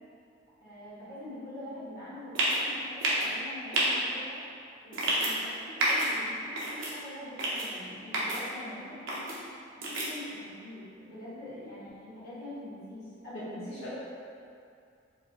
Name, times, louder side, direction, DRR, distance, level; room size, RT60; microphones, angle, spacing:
voice 1, 0.6-4.4 4.8-9.3 9.7-13.6, left 1 dB, 50° left, -11 dB, 1.2 m, -44 dB
sound 1, 2.4-2.6 3.0-3.3 3.7-3.9 4.9-5.3 5.8-6.1 6.6-6.9 7.4-7.7 8.1-8.4 9.1-9.3 9.8-10.1, right 1 dB, 80° right, 0.8 m, -28 dB
voice 2, 13.3-13.9, equal, 90° left, -9 dB, 0.7 m, -40 dB
4.5 x 2.5 x 2.7 m, 2.5 s
head